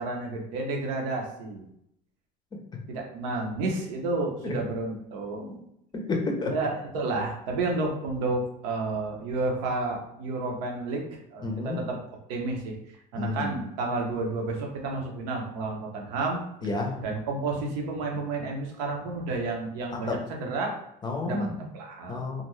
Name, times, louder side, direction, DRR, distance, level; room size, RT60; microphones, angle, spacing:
voice 1, 0.0-1.7 2.9-5.7 6.5-12.0 12.3-12.7 13.1-16.4 17.0-20.8 21.2-22.2, right 3 dB, 80° right, 0 dB, 0.8 m, -31 dB
voice 2, 6.1-6.5 11.4-11.8 13.1-13.6 16.6-17.0 19.9-20.2 21.0-21.7 22.1-22.4, left 3 dB, 20° left, 2 dB, 0.5 m, -30 dB
2.5 x 2.2 x 3.0 m, 0.76 s
supercardioid pair, 105°, 21 cm